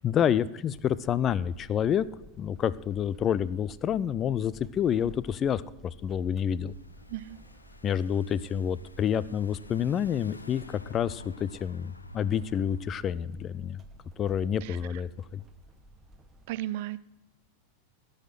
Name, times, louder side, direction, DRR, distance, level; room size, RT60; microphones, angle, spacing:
voice 1, 0.0-2.0 2.4-6.7 7.8-13.8 14.2-15.4, left 9 dB, 25° left, 18 dB, 0.4 m, -28 dB
sound 1, 0.7-16.5, right 1 dB, 20° right, 1.2 m, -53 dB
Car / Engine, 6.2-13.0, left 2 dB, 80° left, 0.8 m, -49 dB
voice 2, 16.5-17.0, right 14 dB, 50° right, 18 dB, 0.5 m, -35 dB
16.5 x 6.5 x 7.7 m, 0.93 s
figure-of-eight pair, 90°, 0 cm